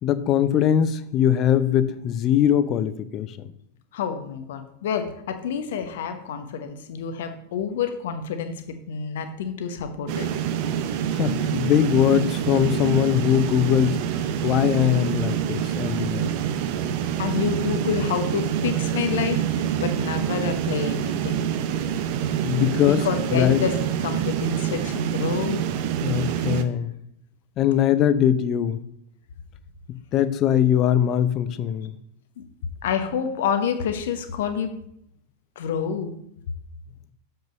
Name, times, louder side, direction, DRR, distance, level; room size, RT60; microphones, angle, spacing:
voice 1, 0.0-3.5 11.1-14.0 14.4-16.3 22.4-23.0 23.3-23.7 26.0-26.9 27.6-28.8 29.9-31.9, left 10 dB, 35° left, 14 dB, 0.6 m, -21 dB
voice 2, 3.9-10.3 17.2-19.5 19.8-21.5 22.8-25.8 32.4-32.5 32.8-34.7 35.6-36.1, left 7 dB, 55° left, 8 dB, 1.0 m, -28 dB
sound 1, 10.1-26.6, right 10 dB, 45° right, 0.7 m, -26 dB
7.3 x 5.7 x 5.2 m, 0.75 s
figure-of-eight pair, 90°, 0 cm